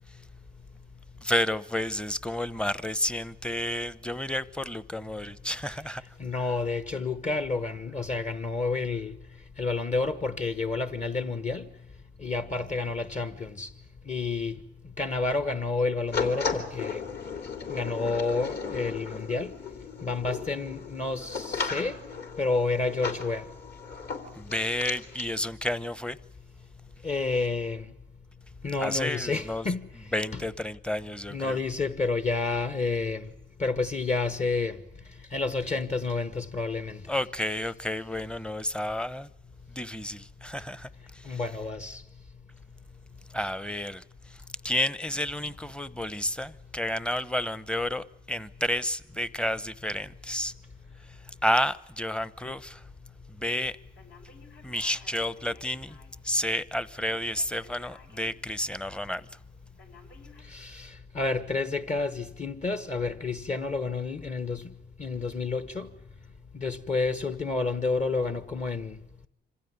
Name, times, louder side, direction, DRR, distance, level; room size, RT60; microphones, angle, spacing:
voice 1, 1.2-6.0 24.3-26.2 28.8-29.7 30.1-31.6 37.1-39.3 39.7-41.4 43.3-50.5 51.0-52.8 53.3-53.8 54.6-56.0 56.2-59.3, left 1 dB, 5° left, 0.9 m, -31 dB
voice 2, 6.2-9.1 9.6-11.7 12.2-13.7 14.1-14.6 15.0-17.0 17.7-19.5 20.0-22.0 22.4-23.4 27.0-27.9 28.6-29.8 31.3-33.3 33.6-34.8 35.3-37.0 41.2-42.0 60.5-64.6 65.0-65.9 66.5-69.0, left 3 dB, 35° left, 1.3 m, -29 dB
sound 1, 16.1-25.3, left 5 dB, 55° left, 3.4 m, -35 dB
Telephone, 54.0-56.3 56.9-58.4 58.8-58.9 59.8-60.4, left 4 dB, 70° left, 5.0 m, -54 dB
26.0 x 16.0 x 9.6 m
cardioid pair, 90°, 20 cm